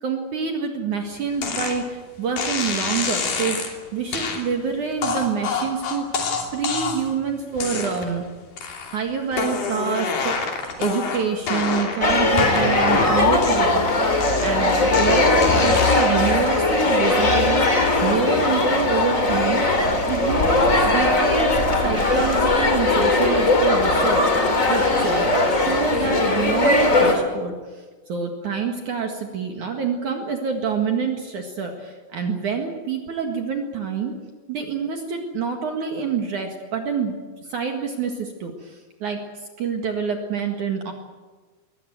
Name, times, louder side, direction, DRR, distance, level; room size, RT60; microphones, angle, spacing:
voice 1, 0.0-3.6 3.9-6.2 6.5-8.2 8.9-14.1 14.4-19.6 20.1-27.8 28.1-34.1 34.5-37.2 37.4-39.2 39.6-40.9, right 5 dB, 55° right, 3 dB, 2.9 m, -27 dB
sound 1, 1.4-1.8 2.4-3.7 4.1-4.4 5.0-7.1 7.6-8.2 8.6-9.0 9.3-12.0 12.4-13.8 14.2-16.2, left 5 dB, 60° left, 4.6 m, -27 dB
sound 2, 12.0-27.1, left 2 dB, 25° left, 2.4 m, -19 dB
22.0 x 18.5 x 9.3 m, 1.3 s
omnidirectional pair, 4.6 m